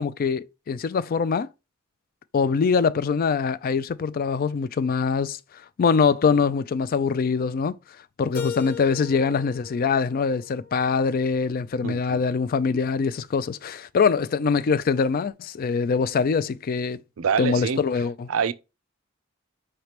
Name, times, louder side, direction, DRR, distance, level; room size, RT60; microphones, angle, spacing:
voice 1, 0.0-1.5 2.3-5.4 5.8-7.8 8.2-17.0 17.4-18.3, left 5 dB, 45° left, 0.3 m, -23 dB
Keyboard (musical), 8.3-11.2, left 7 dB, 75° left, 0.9 m, -38 dB
voice 2, 11.8-12.2 17.2-17.8 18.3-18.5, right 6 dB, 75° right, 0.4 m, -25 dB
4.9 x 3.3 x 2.9 m
head